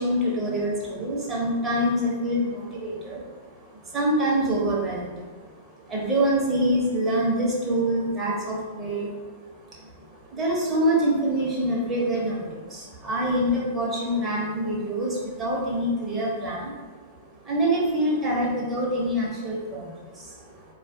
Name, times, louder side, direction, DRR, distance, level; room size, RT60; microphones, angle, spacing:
voice 1, 0.0-5.5 5.8-16.9 17.4-20.7, right 1 dB, 20° right, -5 dB, 0.9 m, -26 dB
3.9 x 2.4 x 2.7 m, 1.4 s
figure-of-eight pair, 100°, 0 cm